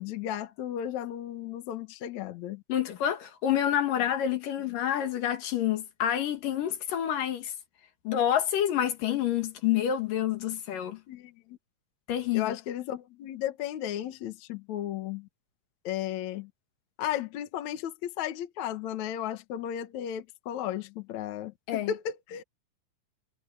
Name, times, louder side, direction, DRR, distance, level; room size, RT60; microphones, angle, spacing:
voice 1, 0.0-2.6 11.1-11.6 12.3-15.3 15.8-16.5 17.0-22.4, left 11 dB, 65° left, 2.4 m, -34 dB
voice 2, 2.7-7.5 8.0-11.0 12.1-12.5 21.7-21.9, left 10 dB, 80° left, 3.4 m, -28 dB
omnidirectional pair, 3.8 m